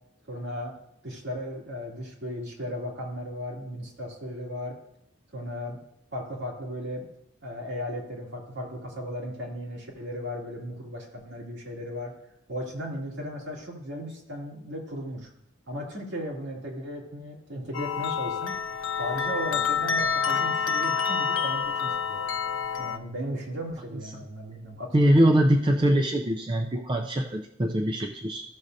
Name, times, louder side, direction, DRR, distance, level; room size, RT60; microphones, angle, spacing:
voice 1, 0.3-0.7 1.0-4.8 5.3-5.8 6.1-7.1 7.4-12.1 12.5-15.3 15.7-18.6 19.0-22.2 22.8-25.2, equal, 65° right, -3 dB, 2.4 m, -36 dB
sound 1, 17.7-23.0, left 6 dB, 85° left, 0.6 m, -28 dB
voice 2, 24.9-28.4, right 1 dB, 25° right, 2 dB, 0.4 m, -22 dB
15.0 x 6.2 x 2.7 m, 0.80 s
head